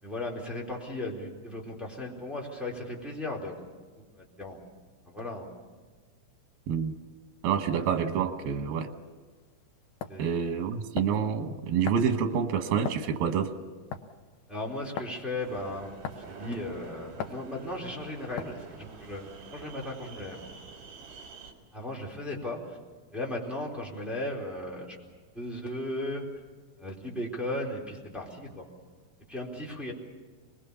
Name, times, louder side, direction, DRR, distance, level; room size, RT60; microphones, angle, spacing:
voice 1, 0.0-3.7 4.0-4.6 5.1-5.5 10.1-10.3 14.5-15.9 16.3-20.5 21.7-22.8 23.1-25.0 25.3-26.3 26.8-28.7 29.3-29.9, left 1 dB, ahead, -3 dB, 3.7 m, -36 dB
voice 2, 7.4-8.9 10.2-13.5, right 7 dB, 85° right, 7 dB, 3.0 m, -27 dB
sound 1, 9.3-9.4 10.0-10.2 11.0-11.2 11.9-12.1 12.8-13.1 13.9-14.2 15.0-15.2 16.0-16.3 17.2-17.4 18.4-18.7, left 8 dB, 70° left, 2.3 m, -37 dB
sound 2, 15.4-21.5, right 5 dB, 65° right, 3.9 m, -47 dB
26.0 x 20.5 x 7.0 m, 1.4 s
omnidirectional pair, 4.0 m